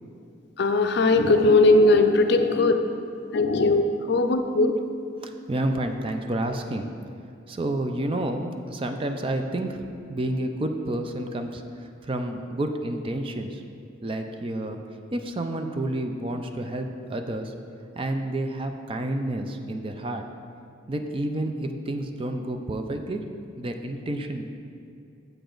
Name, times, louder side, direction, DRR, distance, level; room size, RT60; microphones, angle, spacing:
voice 1, 0.6-2.7 3.3-3.8 4.1-4.7, left 2 dB, 55° left, 6 dB, 0.4 m, -19 dB
voice 2, 5.2-6.9 7.5-9.8 10.1-13.6 14.0-14.8 15.1-17.5 18.0-20.3 20.9-23.3 23.6-24.4, right 1 dB, 25° right, 5 dB, 0.4 m, -30 dB
7.9 x 6.8 x 3.9 m, 2.6 s
head